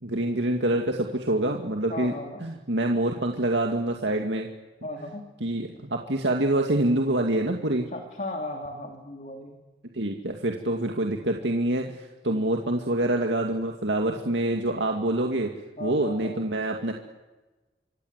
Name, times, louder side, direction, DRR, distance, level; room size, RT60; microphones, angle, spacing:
voice 1, 0.0-2.1 2.4-4.5 5.4-7.9 9.9-15.5 15.8-16.9, right 1 dB, 80° right, 2 dB, 2.2 m, -26 dB
voice 2, 1.9-2.5 4.8-5.3 7.9-9.6 12.2-12.5 15.8-16.4, left 1 dB, 45° left, 4 dB, 2.7 m, -36 dB
27.0 x 25.0 x 8.2 m, 1.1 s
head